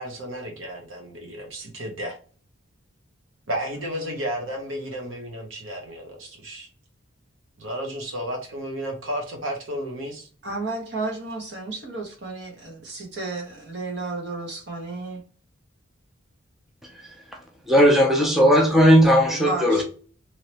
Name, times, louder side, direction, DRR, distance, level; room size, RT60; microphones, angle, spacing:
voice 1, 0.0-2.2 3.5-6.7 7.6-10.3, equal, 75° right, 1.0 m, -32 dB
voice 2, 10.4-15.2 19.3-19.8, right 2 dB, 55° right, 1.1 m, -32 dB
voice 3, 17.7-19.8, equal, ahead, 0.4 m, -16 dB
3.1 x 2.8 x 2.8 m
head